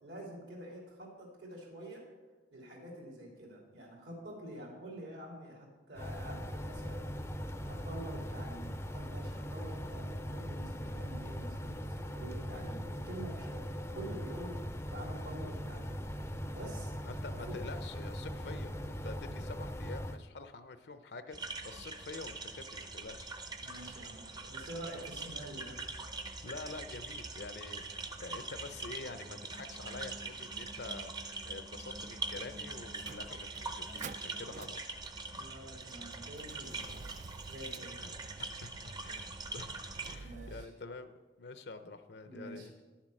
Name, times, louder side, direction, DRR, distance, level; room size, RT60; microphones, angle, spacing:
voice 1, 0.0-2.0 2.5-7.2 7.6-14.6 14.9-16.0 16.4-16.9 17.3-17.6 18.4-18.5 23.6-25.8 35.3-37.0 37.5-38.0 40.2-40.7 42.2-42.7, right 1 dB, 75° right, -1 dB, 3.1 m, -47 dB
sound 1, 6.0-20.2, equal, 15° left, 0.5 m, -40 dB
voice 2, 17.0-23.3 26.4-35.1 38.0-38.1 38.4-41.1 41.4-42.8, left 3 dB, 65° left, 10 dB, 0.6 m, -47 dB
sound 2, 21.3-40.2, right 3 dB, 25° right, 0.7 m, -43 dB
Motor vehicle (road), 32.3-40.7, right 5 dB, 45° right, 0.3 m, -51 dB
10.5 x 7.3 x 6.3 m, 1.3 s
head